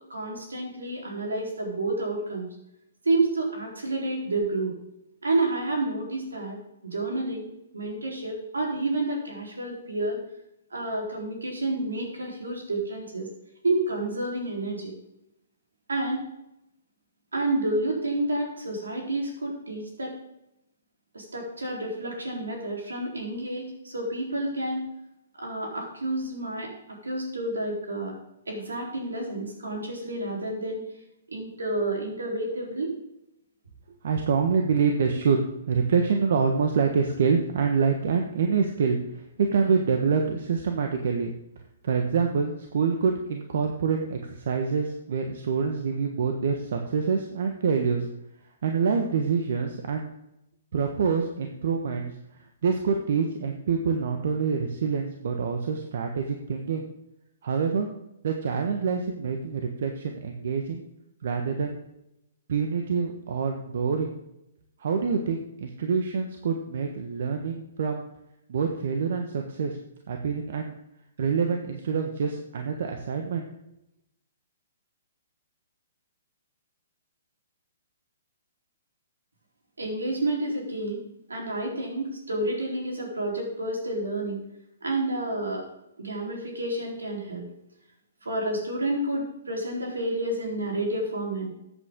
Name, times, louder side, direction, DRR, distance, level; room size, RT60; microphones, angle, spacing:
voice 1, 0.1-2.5 3.0-4.7 5.2-6.6 6.8-10.2 10.7-13.3 13.6-14.9 15.9-16.2 17.3-20.2 21.1-24.9 25.4-26.7 27.0-28.1 28.5-30.8 31.3-32.9 79.8-81.0 81.3-84.4 84.8-85.7 86.0-87.5 88.2-91.5, right 2 dB, 90° right, -1 dB, 4.1 m, -29 dB
voice 2, 34.0-41.3 41.8-48.0 48.6-50.1 50.7-52.1 52.6-56.9 57.4-57.9 58.2-60.8 61.2-61.8 62.5-64.1 64.8-68.0 68.5-69.8 70.1-70.8 71.2-73.5, right 5 dB, 65° right, 3 dB, 1.4 m, -26 dB
14.0 x 8.5 x 3.8 m, 0.83 s
hypercardioid pair, 130°, 0 cm